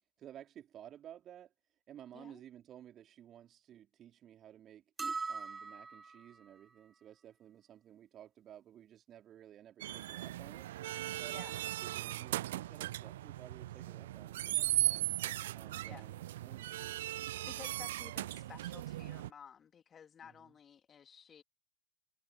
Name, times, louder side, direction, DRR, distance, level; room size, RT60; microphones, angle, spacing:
voice 1, 0.2-1.5 1.9-4.8 5.3-10.7 11.1-15.1 15.5-16.7 20.2-20.5, right 11 dB, 30° right, 3.0 m, -55 dB
sound 1, 5.0-6.3, right 4 dB, 15° right, 0.7 m, -40 dB
sound 2, 9.8-19.3, right 14 dB, 55° right, 0.4 m, -38 dB
voice 2, 11.3-11.6 15.9-16.1 17.3-21.4, left 7 dB, 20° left, 3.3 m, -54 dB
figure-of-eight pair, 90°, 0 cm